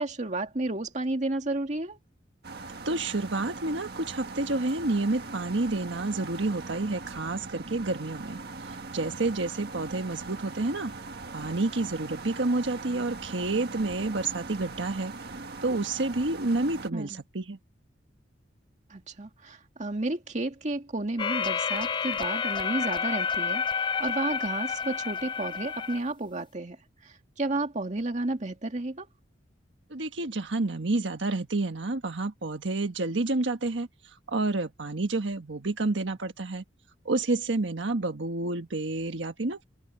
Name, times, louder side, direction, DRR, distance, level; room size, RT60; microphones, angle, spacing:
voice 1, 0.0-2.0 16.9-17.2 18.9-26.8 27.0-29.1, right 2 dB, 40° right, 2.1 m, -32 dB
sound 1, 2.4-16.9, right 3 dB, 60° right, 1.7 m, -41 dB
voice 2, 2.8-10.9 11.3-15.1 15.6-17.6 29.9-36.6 37.0-39.6, right 2 dB, 80° right, 1.4 m, -29 dB
sound 2, 21.2-26.0, left 6 dB, 25° left, 0.3 m, -30 dB
head